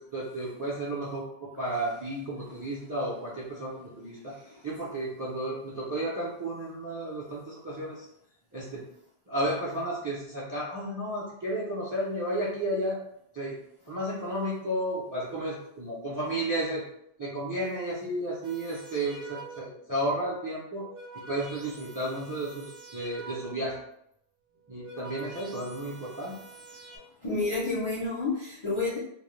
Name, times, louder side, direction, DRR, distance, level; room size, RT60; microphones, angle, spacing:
voice 1, 0.1-1.3 1.6-4.3 4.6-8.1 8.5-8.8 9.3-13.0 13.3-13.6 13.9-16.8 17.2-20.9 21.1-23.8 24.7-26.4, right 1 dB, 30° right, -5 dB, 0.3 m, -32 dB
voice 2, 4.2-4.7 25.3-25.5 26.2-26.4 26.9-29.0, left 3 dB, 40° left, -7 dB, 0.4 m, -31 dB
sound 1, 18.4-19.9 20.6-23.8 24.5-27.0, right 3 dB, 70° right, 0.8 m, -47 dB
2.2 x 2.0 x 3.0 m, 0.73 s
omnidirectional pair, 1.1 m